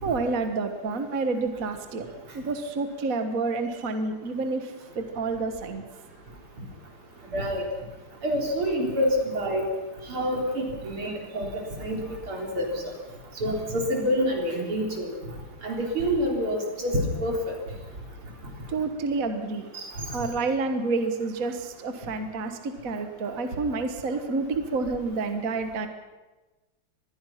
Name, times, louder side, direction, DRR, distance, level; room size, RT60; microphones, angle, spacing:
voice 1, 0.0-2.1 2.3-5.8 18.7-19.7 20.1-25.9, right 3 dB, 45° right, 7 dB, 1.7 m, -29 dB
voice 2, 7.3-7.6 8.2-9.6 10.1-12.0 12.3-12.7 13.4-15.2 15.6-17.5 19.7-19.9, equal, 80° right, 1 dB, 4.8 m, -27 dB
25.5 x 20.5 x 5.8 m, 1.2 s
omnidirectional pair, 2.3 m